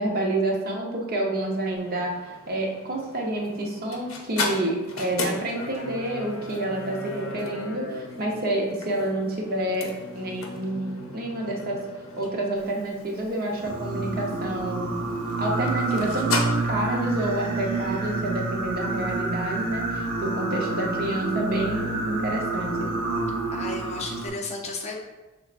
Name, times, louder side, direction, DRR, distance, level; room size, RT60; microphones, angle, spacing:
voice 1, 0.0-11.8 12.2-14.9 15.4-22.9, right 1 dB, 45° right, 0 dB, 0.8 m, -28 dB
sound 1, 1.4-16.4, left 3 dB, 70° left, 0.7 m, -36 dB
Singing, 13.6-24.3, right 3 dB, 80° right, 1.0 m, -28 dB
voice 2, 23.5-25.0, left 3 dB, 30° left, 1 dB, 0.5 m, -33 dB
6.1 x 3.4 x 2.4 m, 1.1 s
head